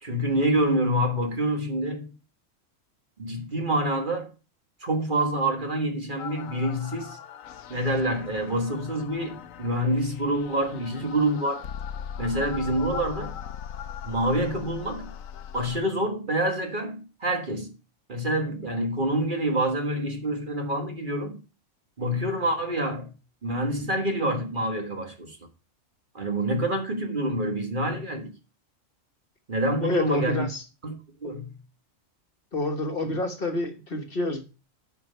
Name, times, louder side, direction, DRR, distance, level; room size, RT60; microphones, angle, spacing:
voice 1, 0.0-2.1 3.2-4.3 4.8-7.2 7.7-11.6 12.2-13.4 14.0-15.1 15.5-17.7 18.1-21.4 22.0-23.1 23.4-25.4 26.1-28.3 29.5-30.5 30.8-30.9 31.2-31.5 33.0-33.1, right 1 dB, 40° right, 1.6 m, -27 dB
sound 1, 6.2-15.8, left 9 dB, 80° left, 1.1 m, -39 dB
voice 2, 10.7-11.0 29.8-30.6 32.5-34.4, left 2 dB, 45° left, 1.4 m, -28 dB
9.0 x 5.8 x 5.5 m
omnidirectional pair, 1.3 m